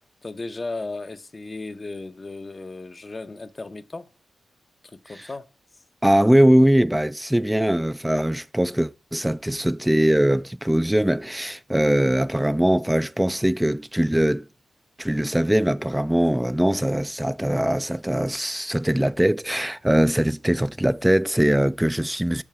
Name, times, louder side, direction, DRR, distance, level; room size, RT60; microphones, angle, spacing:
voice 1, 0.2-4.1 4.8-5.5, left 3 dB, 40° left, 0.7 m, -35 dB
voice 2, 6.0-14.5 15.0-22.4, right 1 dB, 10° right, 0.4 m, -21 dB
6.5 x 5.9 x 4.8 m
supercardioid pair, 40°, 0 cm